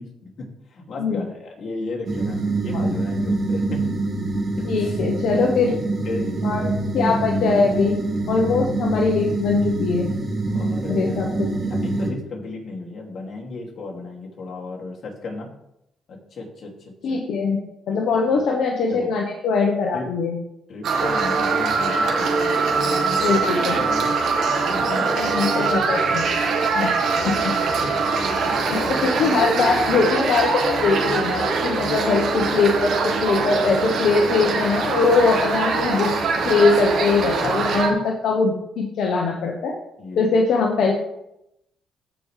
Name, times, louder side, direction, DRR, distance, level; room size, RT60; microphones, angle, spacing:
voice 1, 0.0-3.8 4.6-5.0 5.6-5.8 6.0-6.7 7.0-7.2 7.6-7.7 10.5-11.2 11.6-15.5 16.1-16.7 17.0-17.2 17.9-18.5 18.9-19.1 19.9-20.1 20.7-24.1 24.6-26.0 26.8-26.9 27.2-29.5 37.4-38.0 40.0-40.4, left 2 dB, 55° left, -2 dB, 2.6 m, -34 dB
sound 1, 2.1-12.1, right 2 dB, 45° right, 2.3 m, -25 dB
voice 2, 4.6-5.7 6.4-6.6 6.9-8.0 8.3-10.1 10.9-11.5 17.0-17.6 17.9-20.4 23.2-23.8 24.3-24.4 25.2-26.2 26.7-27.2 28.7-36.1 36.4-39.7 40.2-40.9, left 4 dB, 75° left, 0 dB, 1.1 m, -21 dB
sound 2, 20.8-37.9, right 4 dB, 70° right, 1.6 m, -22 dB
14.5 x 5.1 x 3.4 m, 0.84 s
cardioid pair, 90°, 0 cm